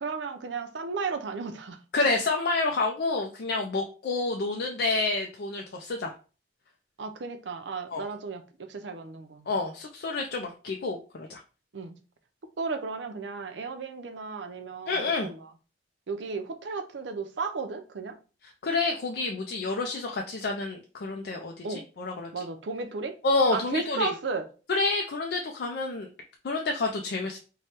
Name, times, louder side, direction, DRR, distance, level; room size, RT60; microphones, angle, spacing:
voice 1, 0.0-1.8 7.0-9.5 11.7-12.0 12.6-15.5 16.1-18.2 21.6-21.8 22.3-23.2 23.5-24.5, right 4 dB, 80° right, 0.6 m, -34 dB
voice 2, 1.9-6.1 7.9-8.0 9.5-11.4 14.9-15.3 18.6-22.3 23.2-24.1 24.7-26.1 26.4-27.4, left 3 dB, 60° left, 0.4 m, -28 dB
3.2 x 2.2 x 4.3 m
head